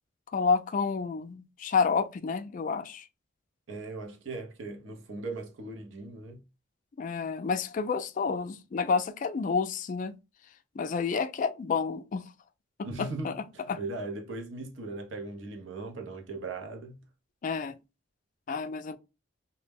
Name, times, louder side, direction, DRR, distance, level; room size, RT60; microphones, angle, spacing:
voice 1, 0.3-3.0 7.0-10.2 10.8-12.3 12.8-13.3 13.7-13.8 17.4-17.8 18.5-19.0, left 5 dB, 40° left, 0.3 m, -29 dB
voice 2, 3.7-6.4 12.8-17.0, right 3 dB, 70° right, 0.6 m, -39 dB
2.1 x 2.0 x 3.4 m
head